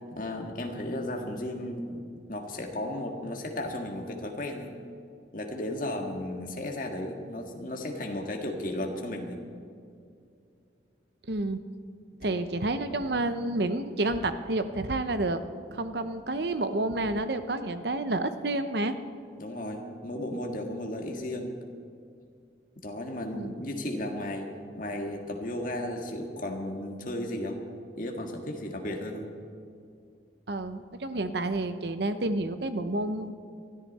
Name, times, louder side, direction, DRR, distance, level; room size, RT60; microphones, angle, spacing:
voice 1, 0.1-2.0 2.3-4.7 5.3-9.4 12.2-12.4 19.4-21.5 22.8-27.6 27.9-29.3, left 1 dB, 45° left, 2 dB, 1.9 m, -34 dB
voice 2, 11.3-11.6 12.2-15.4 15.7-19.0 23.3-23.5 30.5-33.3, right 2 dB, 65° right, 10 dB, 0.8 m, -29 dB
22.0 x 14.0 x 4.2 m, 2.4 s
head